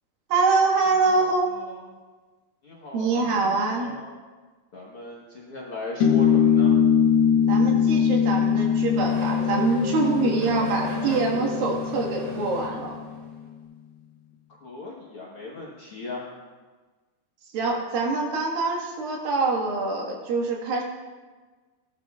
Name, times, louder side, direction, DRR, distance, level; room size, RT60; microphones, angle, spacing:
voice 1, 0.3-1.5 2.9-3.9 7.5-13.0 17.5-20.8, right 3 dB, 75° right, -1 dB, 3.4 m, -24 dB
voice 2, 1.3-1.8 2.6-4.1 4.7-6.7 14.6-16.3, left 2 dB, 60° left, -4 dB, 1.5 m, -38 dB
sound 1, 6.0-13.0, left 7 dB, 90° left, 2.9 m, -22 dB
Race car auto racing / Accelerating revving vroom, 7.8-13.4, equal, 50° right, 4.5 m, -37 dB
18.5 x 11.5 x 2.4 m, 1.3 s
omnidirectional pair, 4.2 m